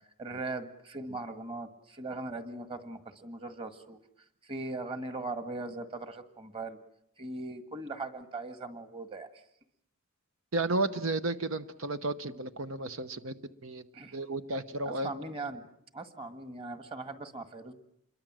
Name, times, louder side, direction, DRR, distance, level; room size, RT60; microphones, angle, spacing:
voice 1, 0.2-4.0 4.4-6.8 7.2-9.4 13.9-14.2 14.9-15.7 15.9-17.7, right 2 dB, 25° right, 9 dB, 1.8 m, -39 dB
voice 2, 10.5-13.3 13.6-13.8 14.1-15.1, right 2 dB, 75° right, 11 dB, 1.0 m, -32 dB
27.5 x 22.5 x 7.6 m, 0.71 s
head